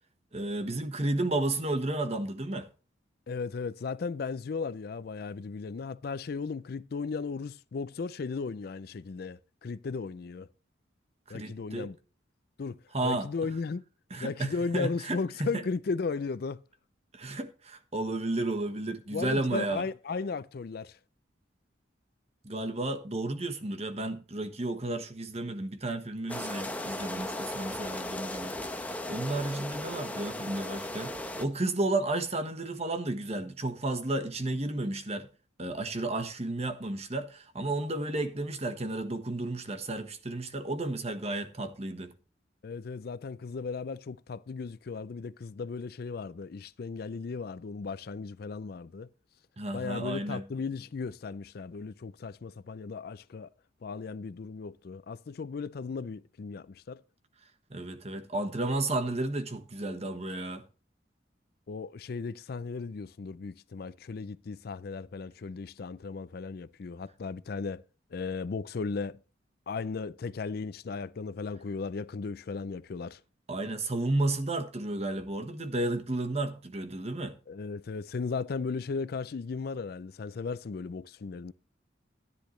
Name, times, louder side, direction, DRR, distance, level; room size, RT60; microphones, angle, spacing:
voice 1, 0.3-2.7 11.3-11.9 12.9-13.3 14.1-15.6 17.1-19.9 22.4-35.3 35.6-42.1 49.6-50.5 57.7-60.6 73.5-77.4, right 2 dB, 35° right, 1.3 m, -32 dB
voice 2, 3.3-10.5 11.3-12.0 12.6-13.8 14.2-16.6 19.1-21.0 42.6-49.1 49.7-53.5 53.8-57.0 61.7-67.8 68.1-69.2 69.7-73.2 77.5-81.5, left 4 dB, 55° left, 0.4 m, -36 dB
sound 1, 26.3-31.5, left 1 dB, 10° left, 0.9 m, -36 dB
13.0 x 10.0 x 3.2 m
head